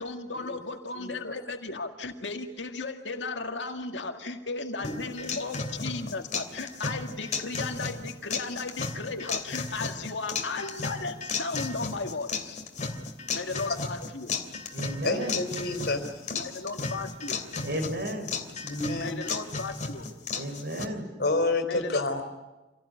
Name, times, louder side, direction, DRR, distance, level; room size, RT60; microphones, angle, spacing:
voice 1, 0.0-12.6 13.3-14.3 16.3-17.4 19.0-20.1 21.6-22.2, left 3 dB, 85° left, 5 dB, 2.0 m, -35 dB
voice 2, 0.9-1.3 4.8-5.5 15.0-16.5 18.6-19.2 21.2-22.2, left 2 dB, 65° left, 7 dB, 4.0 m, -30 dB
sound 1, 4.8-20.9, left 4 dB, 45° left, 2.9 m, -34 dB
voice 3, 14.7-15.4 17.6-18.3 20.3-21.1, right 1 dB, 65° right, 4 dB, 6.4 m, -33 dB
27.5 x 17.5 x 10.0 m, 1.1 s
head